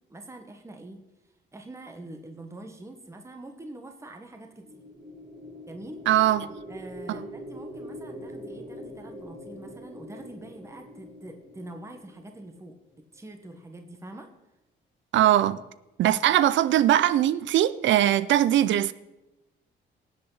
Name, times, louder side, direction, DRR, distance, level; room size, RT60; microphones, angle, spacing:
voice 1, 0.1-1.0 1.5-4.8 5.7-6.0 6.7-12.8 13.1-14.3, right 1 dB, 15° right, 1.4 m, -44 dB
sound 1, 4.4-12.9, equal, 35° right, 4.4 m, -43 dB
voice 2, 6.1-6.5 7.1-7.2 15.1-15.6 16.0-18.9, right 12 dB, 70° right, 0.5 m, -21 dB
19.5 x 7.8 x 4.1 m
cardioid pair, 90°, 20 cm